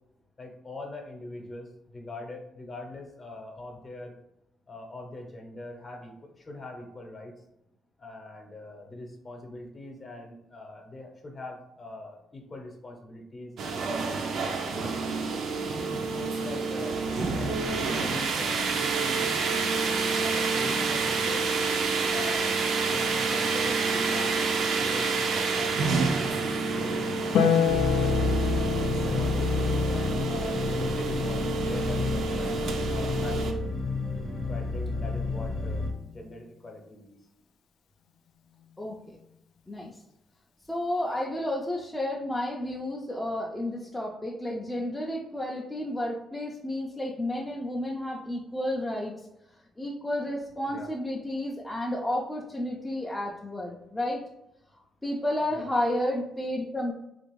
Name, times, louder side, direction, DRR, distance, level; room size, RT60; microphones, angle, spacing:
voice 1, 0.4-4.1 4.7-7.3 8.0-15.4 16.0-17.0 17.4-19.6 20.1-21.5 22.1-22.6 22.9-24.4 24.8-28.5 29.1-33.9 34.5-35.9 36.1-37.2 50.7-50.9 55.5-55.7, left 2 dB, 35° left, 2 dB, 0.8 m, -42 dB
sound 1, 13.6-33.5, right 4 dB, 70° right, 0.4 m, -28 dB
Harp, 27.3-33.9 35.5-36.5, left 7 dB, 90° left, 0.3 m, -31 dB
sound 2, 27.7-35.9, left 3 dB, 70° left, 0.8 m, -30 dB
voice 2, 38.8-39.2 39.7-39.9 40.7-49.1 49.8-54.2 55.0-56.9, left 1 dB, 10° left, -2 dB, 0.4 m, -31 dB
3.3 x 2.5 x 3.0 m, 0.84 s
cardioid pair, 90°, 0 cm